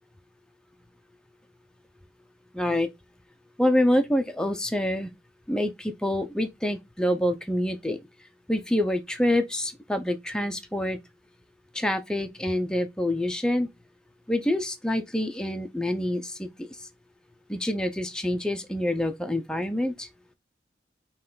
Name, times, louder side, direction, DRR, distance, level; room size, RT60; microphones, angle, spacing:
voice 1, 2.5-2.9 3.6-5.1 5.5-8.0 8.5-11.0 11.7-13.7 14.3-16.7 17.5-20.1, left 1 dB, 5° left, 0.4 m, -26 dB
5.4 x 2.3 x 3.7 m
head